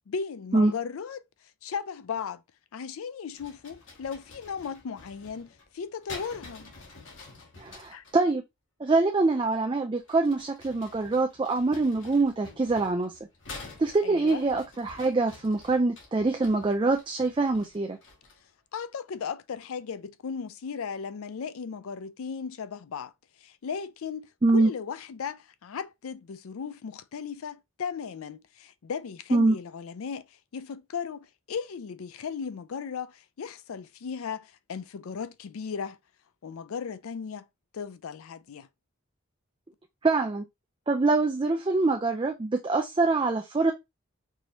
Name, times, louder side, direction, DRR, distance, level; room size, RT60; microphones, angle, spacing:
voice 1, 0.1-1.2 1.6-2.4 2.7-6.7 7.9-8.0 14.0-14.4 18.7-23.1 23.4-24.3 24.5-30.3 30.5-36.0 36.4-37.5 37.7-38.7, left 6 dB, 80° left, 0.4 m, -36 dB
sound 1, 3.3-8.2 9.9-18.5, left 3 dB, 55° left, 1.4 m, -48 dB
voice 2, 7.6-8.4 8.8-13.2 13.8-18.0 24.4-24.7 29.3-29.6 40.0-40.4 40.9-43.7, right 3 dB, 20° right, 0.3 m, -24 dB
4.7 x 2.7 x 3.0 m
head